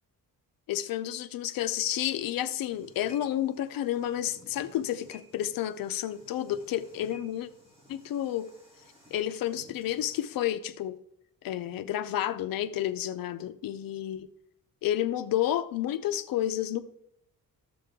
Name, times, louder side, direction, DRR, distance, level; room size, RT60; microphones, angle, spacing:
voice 1, 0.7-7.5 7.9-8.5 9.1-11.0 11.4-14.3 14.8-16.8, left 12 dB, 70° left, 0.6 m, -30 dB
sound 1, 2.6-10.4, left 1 dB, 15° right, 2.7 m, -56 dB
11.5 x 7.7 x 3.6 m
cardioid pair, 175°, 36 cm